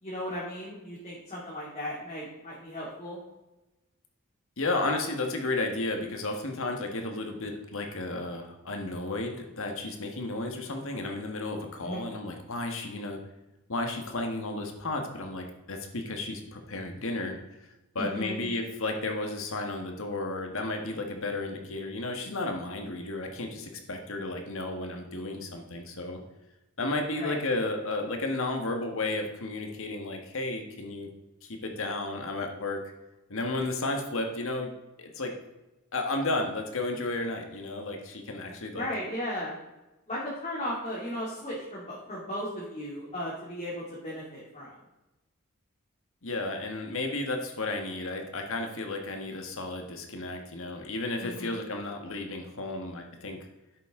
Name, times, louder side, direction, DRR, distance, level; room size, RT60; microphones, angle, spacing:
voice 1, 0.0-3.2 11.8-12.0 17.9-18.4 27.2-27.4 38.4-39.6 40.1-44.8 51.2-51.6, equal, 35° left, -7 dB, 2.8 m, -36 dB
voice 2, 4.6-13.2 13.7-17.4 17.9-26.2 26.8-31.1 31.4-32.8 33.3-34.7 35.0-35.3 35.9-38.9 46.2-53.4, left 2 dB, 65° left, 4 dB, 1.6 m, -33 dB
11.0 x 8.1 x 3.8 m, 1.0 s
head